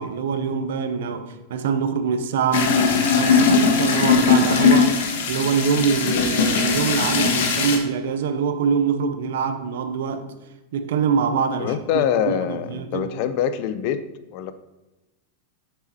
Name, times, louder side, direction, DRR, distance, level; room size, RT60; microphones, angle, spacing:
voice 1, 0.0-5.0 5.3-10.3 10.7-13.1, right 6 dB, 75° right, 0.8 m, -24 dB
sound 1, 2.5-7.8, left 5 dB, 75° left, 1.2 m, -19 dB
voice 2, 11.6-14.0 14.3-14.5, left 9 dB, 50° left, 0.6 m, -24 dB
7.8 x 6.7 x 3.0 m
supercardioid pair, 140°, 0 cm